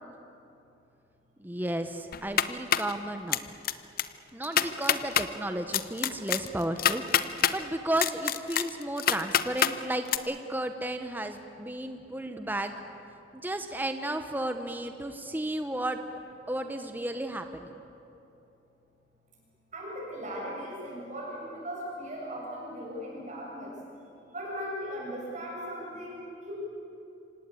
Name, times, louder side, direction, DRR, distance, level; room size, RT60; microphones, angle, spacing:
voice 1, 1.4-3.4 4.3-7.0 7.5-12.7 13.4-16.0 16.5-17.7, right 1 dB, 10° right, 7 dB, 0.8 m, -33 dB
sound 1, 2.1-2.9 3.3-3.7 4.0-4.1 4.4-5.3 5.7-7.6 8.0-9.7 10.1-10.2, left 9 dB, 50° left, 0.7 m, -25 dB
voice 2, 19.7-23.7 24.3-26.5, equal, 40° right, -4 dB, 6.9 m, -38 dB
26.5 x 17.5 x 8.4 m, 2.9 s
head